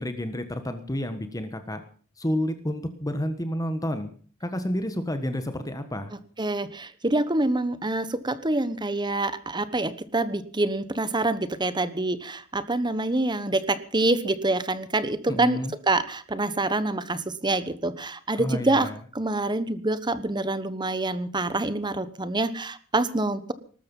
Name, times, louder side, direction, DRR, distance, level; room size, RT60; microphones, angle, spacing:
voice 1, 0.0-1.8 2.2-4.1 4.4-6.1 15.3-15.7 18.4-19.0, left 1 dB, 15° left, 9 dB, 1.4 m, -30 dB
voice 2, 6.4-15.6 15.9-18.9 19.1-23.5, right 2 dB, 20° right, 14 dB, 1.2 m, -26 dB
19.5 x 13.5 x 5.5 m, 0.44 s
head